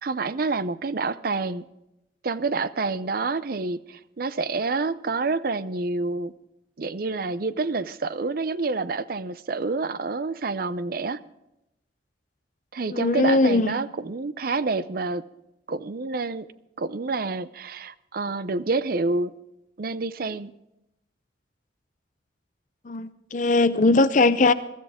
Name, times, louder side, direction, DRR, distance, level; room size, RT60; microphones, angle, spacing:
voice 1, 0.0-1.6 2.2-6.3 6.8-11.2 12.7-15.2 15.7-16.5 16.8-19.3 19.8-20.5, right 3 dB, 50° right, 15 dB, 0.6 m, -28 dB
voice 2, 12.9-13.7 22.8-24.5, left 3 dB, 40° left, 13 dB, 0.6 m, -20 dB
22.0 x 13.5 x 3.6 m, 0.88 s
head